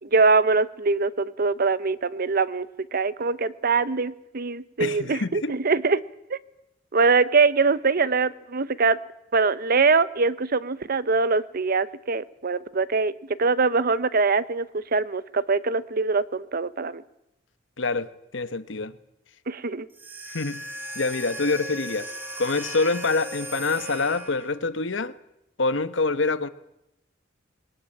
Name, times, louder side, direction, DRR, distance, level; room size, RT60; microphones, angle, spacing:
voice 1, 0.0-6.0 6.3-6.4 6.9-9.0 9.3-13.1 13.4-17.0 19.5-19.9, right 4 dB, 50° right, 16 dB, 0.8 m, -23 dB
voice 2, 4.8-5.5 17.8-18.9 20.3-20.6 20.9-22.1 22.4-25.1 25.6-26.5, left 3 dB, 75° left, 13 dB, 1.1 m, -26 dB
sound 1, 19.9-24.7, equal, 10° right, 3.5 m, -37 dB
21.0 x 18.5 x 8.9 m, 0.87 s
head